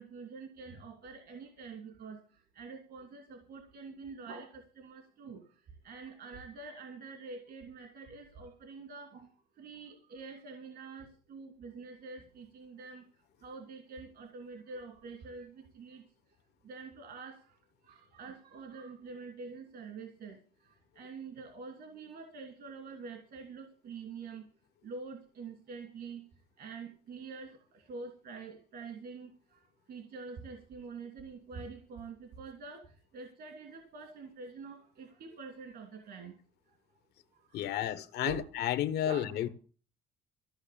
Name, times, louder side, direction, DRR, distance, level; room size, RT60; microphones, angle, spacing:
voice 1, 0.0-2.2 2.5-5.4 5.8-9.3 9.6-13.0 13.4-16.0 16.6-17.5 17.8-20.4 20.6-24.5 24.8-26.2 26.6-29.6 29.9-36.4 37.5-38.0 38.2-38.4 39.0-39.5, right 4 dB, 65° right, 2.8 m, -46 dB
voice 2, 37.5-39.5, left 12 dB, 75° left, 1.1 m, -32 dB
15.5 x 6.2 x 8.6 m
cardioid pair, 110°, 17 cm